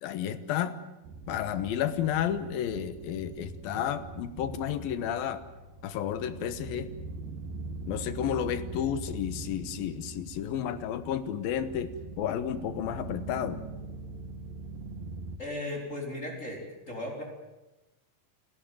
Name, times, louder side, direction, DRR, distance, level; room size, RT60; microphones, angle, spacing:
voice 1, 0.0-0.8 1.3-5.4 5.8-6.9 7.9-11.9 12.2-13.6, left 9 dB, 80° left, 13 dB, 2.9 m, -31 dB
sound 1, 1.0-15.4, right 3 dB, 75° right, 3.1 m, -42 dB
voice 2, 15.4-17.2, left 1 dB, 20° left, -1 dB, 4.6 m, -36 dB
29.5 x 14.5 x 9.2 m, 1.0 s
omnidirectional pair, 4.2 m